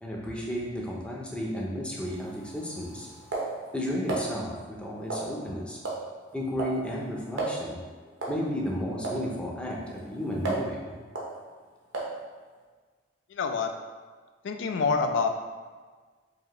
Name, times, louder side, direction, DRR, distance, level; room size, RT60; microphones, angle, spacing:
voice 1, 0.0-3.1 3.7-5.8 6.3-11.0, equal, 5° left, -3 dB, 0.5 m, -33 dB
sound 1, 2.0-4.3 5.1-5.5 5.8-6.1 6.3-6.8 7.1-7.2 7.4-7.6 8.2-8.4 9.0-9.2 9.7-10.7 11.2-11.3 11.9-12.2, right 3 dB, 85° right, 0.8 m, -34 dB
voice 2, 13.3-13.7 14.4-15.3, left 4 dB, 75° left, 5 dB, 0.4 m, -26 dB
4.7 x 2.6 x 3.0 m, 1.5 s
head